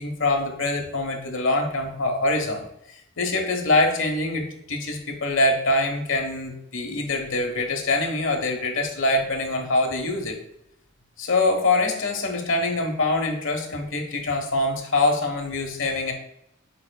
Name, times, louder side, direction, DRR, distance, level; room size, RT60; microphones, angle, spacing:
voice 1, 0.0-10.4 11.2-16.1, left 2 dB, 70° left, 3 dB, 1.3 m, -24 dB
7.9 x 5.4 x 2.3 m, 0.79 s
head